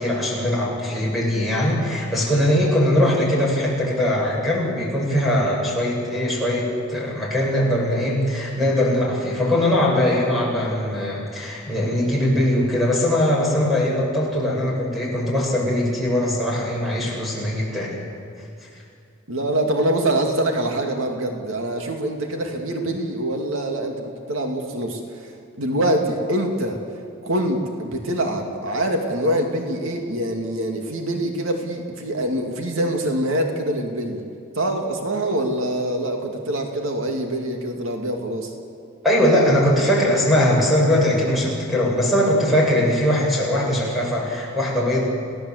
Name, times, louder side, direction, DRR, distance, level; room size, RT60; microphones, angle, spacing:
voice 1, 0.0-18.0 39.0-45.0, left 1 dB, ahead, -4 dB, 7.2 m, -21 dB
voice 2, 19.3-25.3 25.6-26.8 27.2-34.2 34.6-38.5, right 1 dB, 80° right, 3 dB, 2.4 m, -24 dB
29.0 x 17.0 x 8.0 m, 2.4 s
head